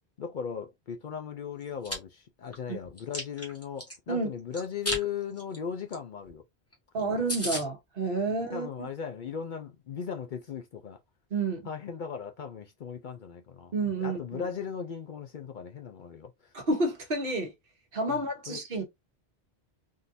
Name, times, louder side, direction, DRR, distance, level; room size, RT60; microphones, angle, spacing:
voice 1, 0.2-6.4 7.0-7.2 8.3-11.0 11.6-13.7 14.0-16.5 18.1-18.6, left 7 dB, 60° left, 0.6 m, -37 dB
Chewing mastication, 1.6-2.0 2.5-4.0 4.5-5.0 5.4-5.6 5.9-6.0 6.3-6.4 6.7-6.8 7.0-7.1 7.3-7.6, left 1 dB, 15° left, 1.1 m, -33 dB
voice 2, 6.9-8.7 11.3-11.6 13.7-14.5 16.5-17.5 17.9-18.8, right 2 dB, 60° right, 1.3 m, -30 dB
3.8 x 2.4 x 2.6 m
omnidirectional pair, 1.1 m